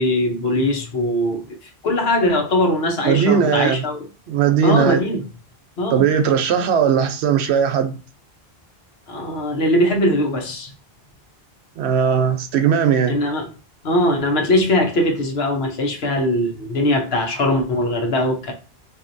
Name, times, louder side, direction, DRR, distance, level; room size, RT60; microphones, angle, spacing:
voice 1, 0.0-1.5 1.8-4.0 4.6-5.2 5.8-6.1 9.1-10.7 13.1-13.5 13.8-18.5, left 1 dB, 75° left, 1.1 m, -20 dB
voice 2, 3.0-3.8 4.3-5.0 5.9-8.0 11.8-13.2, right 7 dB, 90° right, 0.9 m, -18 dB
4.3 x 2.6 x 2.6 m
omnidirectional pair, 1.1 m